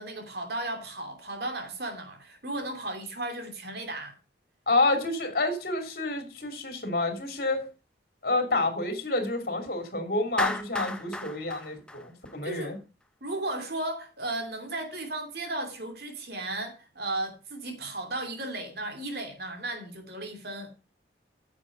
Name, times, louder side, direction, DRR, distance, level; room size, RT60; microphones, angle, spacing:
voice 1, 0.0-4.1 12.4-12.7 13.2-20.7, right 2 dB, 60° right, 2.8 m, -35 dB
voice 2, 4.7-7.7 8.2-12.8, left 2 dB, 50° left, 2.9 m, -28 dB
Clapping, 10.4-12.7, left 1 dB, 5° left, 0.9 m, -33 dB
9.9 x 7.4 x 5.3 m
head